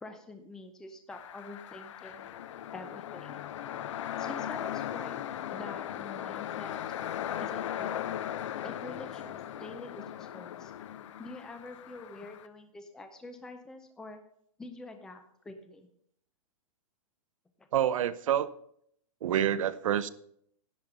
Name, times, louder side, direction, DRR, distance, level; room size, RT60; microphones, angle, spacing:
voice 1, 0.0-2.3 2.7-3.4 4.2-5.2 5.5-6.8 7.4-8.0 8.6-10.7 11.2-14.2 14.6-15.9 17.6-17.7, left 2 dB, 5° left, 0.5 m, -46 dB
sound 1, 1.1-12.5, left 10 dB, 55° left, 0.6 m, -38 dB
voice 2, 17.7-18.5 19.2-20.1, right 10 dB, 65° right, 0.7 m, -27 dB
10.5 x 5.4 x 7.8 m
hypercardioid pair, 170°, 18 cm